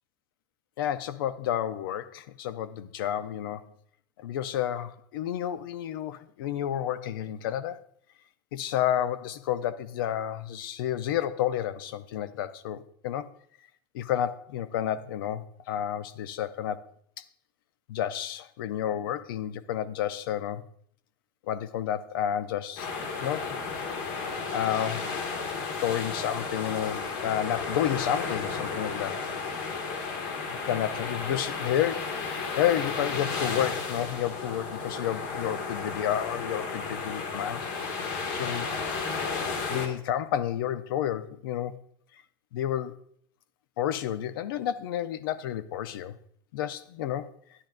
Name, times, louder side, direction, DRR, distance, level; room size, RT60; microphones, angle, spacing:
voice 1, 0.8-3.7 4.2-7.8 8.5-13.3 13.9-16.8 17.9-20.6 21.5-23.6 24.5-25.1 25.8-29.2 30.5-37.7 38.3-38.7 39.7-41.8 42.5-42.9 43.8-46.2 46.5-47.3, left 10 dB, 80° left, 14 dB, 0.6 m, -30 dB
sound 1, 22.8-39.9, left 4 dB, 60° left, 1.6 m, -33 dB
10.5 x 10.0 x 2.5 m, 0.63 s
supercardioid pair, 150°, 11 cm